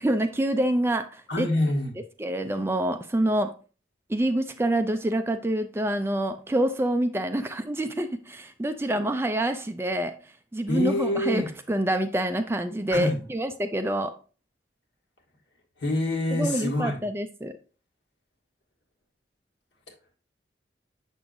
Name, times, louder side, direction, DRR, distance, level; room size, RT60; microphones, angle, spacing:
voice 1, 0.0-1.5 2.2-3.5 4.1-10.1 10.5-11.4 11.7-14.1 16.3-17.5, right 1 dB, 15° right, 8 dB, 0.3 m, -26 dB
voice 2, 1.3-1.9 10.7-11.5 12.9-13.2 15.8-17.0, left 1 dB, 75° left, 0 dB, 1.7 m, -26 dB
6.8 x 6.3 x 2.6 m, 0.36 s
head